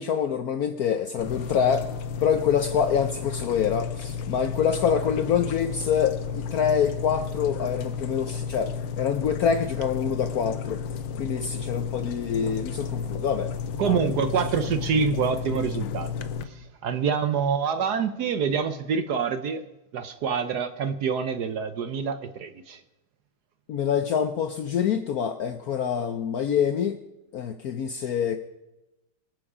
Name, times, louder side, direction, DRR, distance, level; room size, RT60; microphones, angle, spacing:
voice 1, 0.0-1.9 2.2-8.7 9.0-10.8 11.2-13.5 13.8-14.1 23.7-27.0 27.3-28.4, left 7 dB, 65° left, 8 dB, 0.9 m, -26 dB
sound 1, 1.2-16.4, left 6 dB, 85° left, 1.6 m, -32 dB
voice 2, 13.8-16.1 16.4-19.6 19.9-22.8, right 6 dB, 65° right, 10 dB, 1.1 m, -26 dB
23.5 x 7.9 x 4.9 m, 0.96 s
omnidirectional pair, 2.2 m